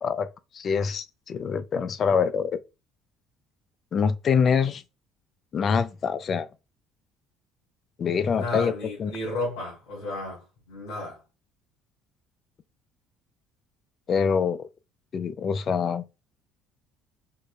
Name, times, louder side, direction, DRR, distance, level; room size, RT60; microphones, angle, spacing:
voice 1, 0.5-2.6 3.9-4.8 5.5-6.5 8.0-8.7 9.0-9.1 14.1-14.7 15.1-16.0, left 6 dB, 45° left, 0.4 m, -25 dB
voice 2, 8.2-11.2, left 2 dB, 75° left, 2.2 m, -33 dB
4.7 x 2.5 x 2.3 m
supercardioid pair, 95°, 0 cm